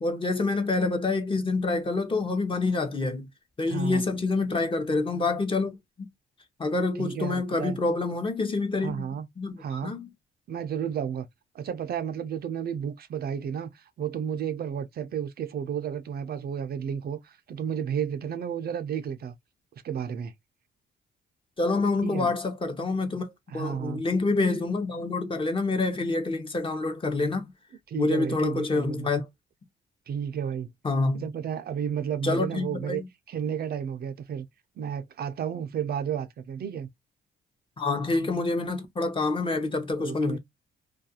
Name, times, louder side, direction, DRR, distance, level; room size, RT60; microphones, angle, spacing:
voice 1, 0.0-3.3 3.6-5.8 6.6-8.9 9.4-10.1 21.6-27.5 28.0-29.3 30.8-31.3 32.2-33.1 37.8-40.4, left 3 dB, 25° left, 0.7 m, -27 dB
voice 2, 3.7-4.2 7.0-7.8 8.8-9.3 9.6-9.9 10.5-11.3 11.5-19.3 19.8-20.3 22.0-22.3 23.5-24.0 27.9-29.1 30.1-30.7 31.1-33.0 33.3-34.5 34.8-36.9 40.0-40.4, right 8 dB, 50° right, 0.4 m, -32 dB
2.4 x 2.2 x 2.6 m
cardioid pair, 90°, 20 cm